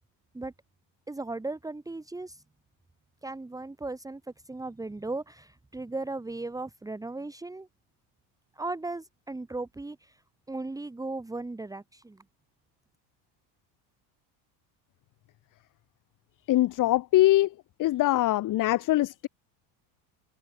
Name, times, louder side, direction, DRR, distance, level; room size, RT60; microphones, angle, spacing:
voice 1, 1.1-2.4 3.2-7.7 8.6-10.2 10.5-12.2, right 2 dB, 5° right, 2.7 m, -37 dB
voice 2, 16.5-17.5 17.8-19.3, left 16 dB, 40° left, 1.4 m, -23 dB
cardioid pair, 150°, 48 cm